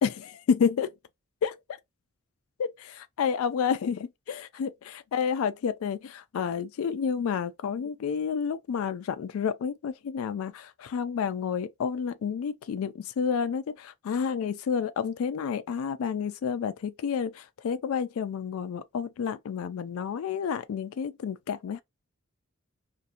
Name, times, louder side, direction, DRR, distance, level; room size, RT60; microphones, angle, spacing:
voice 1, 0.0-0.9 1.4-1.5 2.6-4.7 5.1-21.8, left 6 dB, 80° left, 0.3 m, -30 dB
2.5 x 2.5 x 2.7 m
head